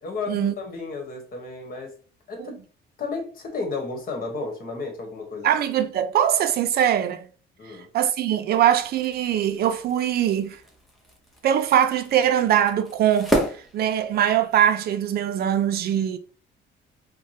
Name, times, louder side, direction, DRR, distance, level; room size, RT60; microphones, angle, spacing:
voice 1, 0.0-1.9 2.3-2.6 3.0-5.5 7.6-7.9, left 3 dB, 45° left, 1.2 m, -33 dB
voice 2, 5.4-7.3 7.9-10.6 11.4-13.3 13.7-16.2, right 10 dB, 50° right, 0.5 m, -22 dB
sound 1, 8.5-14.5, equal, ahead, 0.8 m, -33 dB
4.6 x 2.2 x 2.8 m
cardioid pair, 135°, 20 cm